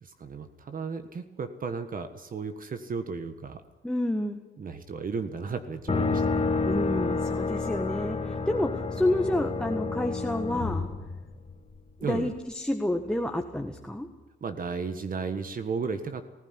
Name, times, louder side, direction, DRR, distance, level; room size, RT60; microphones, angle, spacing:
voice 1, 0.0-3.6 4.6-6.4 12.0-12.3 14.4-16.2, right 5 dB, 45° right, 9 dB, 1.5 m, -34 dB
voice 2, 3.8-4.4 6.6-10.9 12.1-14.1, left 1 dB, 5° left, 4 dB, 1.6 m, -29 dB
sound 1, 5.9-11.8, left 4 dB, 30° left, 2.3 m, -29 dB
19.5 x 15.5 x 9.8 m, 1.1 s
cardioid pair, 90°, 20 cm